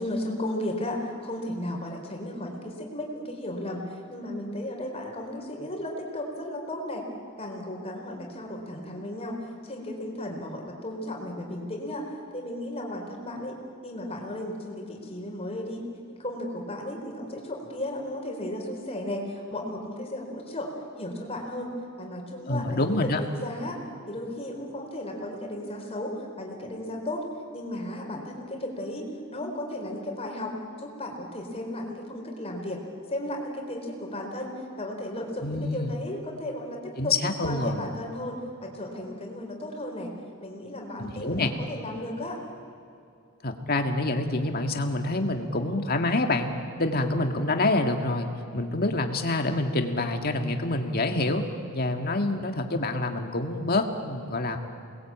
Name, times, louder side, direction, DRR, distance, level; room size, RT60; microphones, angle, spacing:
voice 1, 0.0-7.0 7.4-9.4 9.6-12.0 12.3-13.6 13.8-15.8 16.2-20.7 21.0-21.7 22.0-23.8 24.1-26.1 26.4-27.2 27.5-30.5 30.8-32.8 33.1-37.1 37.4-38.4 38.6-40.1 40.4-42.4, left 1 dB, 25° left, 1 dB, 4.2 m, -35 dB
voice 2, 22.5-23.2 35.4-35.9 37.0-37.9 41.0-41.5 43.4-51.4 51.7-54.6, left 2 dB, 45° left, 5 dB, 2.0 m, -27 dB
28.5 x 20.5 x 8.7 m, 2.6 s
head